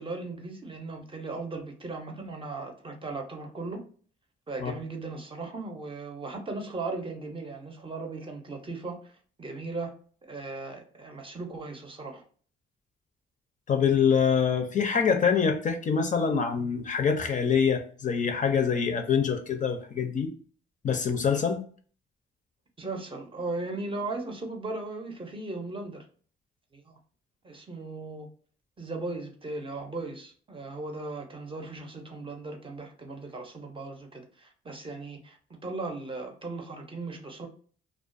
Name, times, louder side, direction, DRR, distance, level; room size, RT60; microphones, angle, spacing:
voice 1, 0.0-3.9 4.5-9.1 9.4-10.0 10.3-12.2 22.8-26.1 26.7-26.9 27.4-28.3 28.8-37.5, right 3 dB, 25° right, 0.6 m, -37 dB
voice 2, 13.7-20.3 20.8-21.6, left 6 dB, 40° left, 0.5 m, -25 dB
2.3 x 2.1 x 2.5 m
cardioid pair, 90°, 20 cm